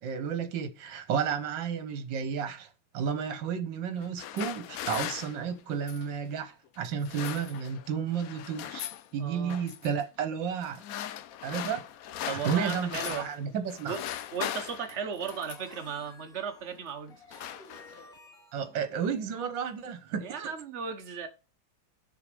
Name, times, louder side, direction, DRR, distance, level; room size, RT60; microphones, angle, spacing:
voice 1, 0.0-8.8 9.1-10.8 11.4-11.8 12.3-14.0 18.5-20.5, right 7 dB, 70° right, 1.8 m, -32 dB
sound 1, 4.0-6.2 6.9-7.9 8.1-9.1 9.5-9.9 10.6-13.4 13.7-15.8 16.6-16.8 17.1-18.2, left 11 dB, 70° left, 0.8 m, -39 dB
voice 2, 9.2-9.6 12.3-13.2 13.9-14.0 14.3-17.4 20.2-21.3, right 6 dB, 40° right, 1.4 m, -36 dB
sound 2, 15.2-20.1, equal, ahead, 2.4 m, -55 dB
6.7 x 4.9 x 6.8 m
omnidirectional pair, 2.1 m